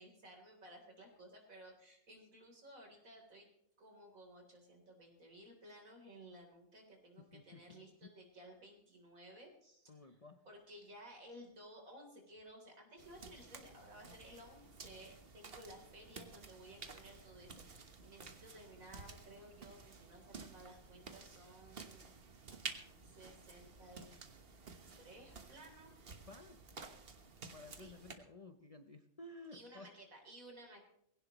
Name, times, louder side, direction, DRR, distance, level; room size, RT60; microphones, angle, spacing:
voice 1, 0.0-3.5 3.8-10.2 10.5-22.1 23.0-24.2 25.0-25.9 27.8-27.9 29.5-30.8, right 1 dB, 70° right, 2 dB, 4.1 m, -57 dB
voice 2, 7.2-7.9 9.9-10.4 26.3-26.6 27.5-29.9, left 2 dB, 35° left, 7 dB, 0.7 m, -55 dB
sound 1, 13.0-28.2, right 4 dB, 45° right, 1.5 m, -53 dB
20.0 x 17.0 x 3.1 m, 0.75 s
omnidirectional pair, 1.5 m